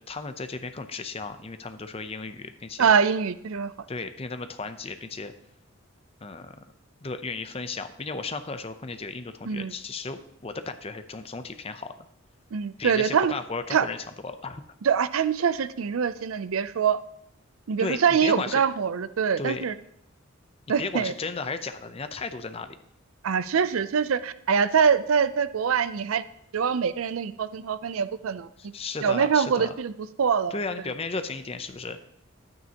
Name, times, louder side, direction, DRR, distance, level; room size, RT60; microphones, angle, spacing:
voice 1, 0.0-2.9 3.9-5.3 6.2-6.6 7.0-11.9 12.8-14.0 14.2-14.6 17.8-18.6 19.4-19.7 20.8-22.8 28.6-29.7 30.5-32.0, left 4 dB, 30° left, 9 dB, 0.6 m, -34 dB
voice 2, 2.8-3.7 9.5-9.7 12.5-13.3 13.7-13.9 14.8-17.0 17.7-19.7 20.7-21.1 23.2-26.2 26.5-28.5 29.0-29.9 30.2-30.6, right 6 dB, 85° right, 14 dB, 0.5 m, -24 dB
11.0 x 9.3 x 2.9 m, 0.75 s
head